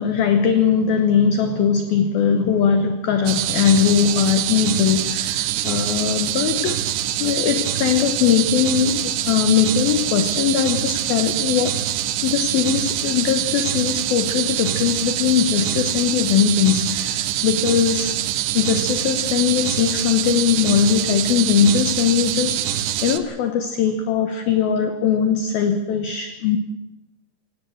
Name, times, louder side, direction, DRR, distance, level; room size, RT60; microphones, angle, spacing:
voice 1, 0.0-6.8 7.2-11.8 12.2-18.2 18.5-22.7 23.0-26.6, left 7 dB, 90° left, 8 dB, 2.1 m, -20 dB
sound 1, 3.3-23.2, right 12 dB, 75° right, 3.2 m, -24 dB
23.5 x 17.0 x 7.9 m, 1.1 s
omnidirectional pair, 5.9 m